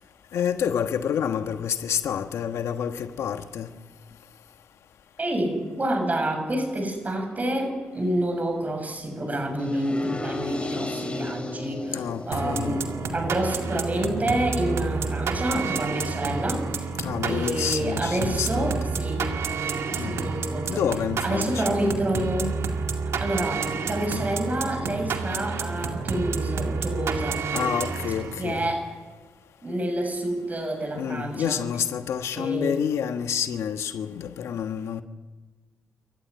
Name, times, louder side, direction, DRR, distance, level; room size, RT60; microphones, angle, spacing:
voice 1, 0.3-3.7 11.9-12.8 17.0-18.8 19.9-20.2 20.7-21.6 27.5-28.7 30.9-35.0, left 8 dB, 85° left, 1.3 m, -28 dB
voice 2, 5.2-12.8 13.1-16.9 17.2-19.3 19.9-20.8 21.2-22.6 23.2-27.4 28.4-28.9 29.6-31.6 32.4-32.8, right 1 dB, 35° right, 7.2 m, -28 dB
sound 1, 9.6-15.6, left 2 dB, 25° left, 4.0 m, -37 dB
sound 2, 12.3-28.6, right 4 dB, 75° right, 2.2 m, -30 dB
27.0 x 15.0 x 9.6 m
cardioid pair, 65°, 5 cm